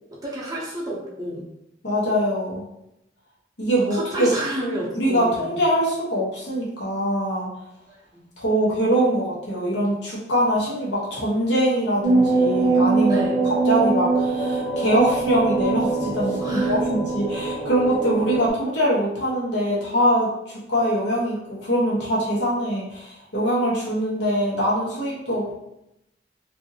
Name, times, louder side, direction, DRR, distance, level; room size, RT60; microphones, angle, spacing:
voice 1, 0.2-1.4 3.8-5.6 7.9-8.2 13.1-13.4 16.4-16.8, right 1 dB, 20° right, -5 dB, 0.6 m, -30 dB
voice 2, 1.8-2.6 3.6-4.3 4.9-7.5 8.4-25.6, equal, 80° left, -5 dB, 1.0 m, -23 dB
sound 1, 12.0-18.5, right 3 dB, 55° left, 1.0 m, -22 dB
2.6 x 2.6 x 2.7 m, 0.86 s
head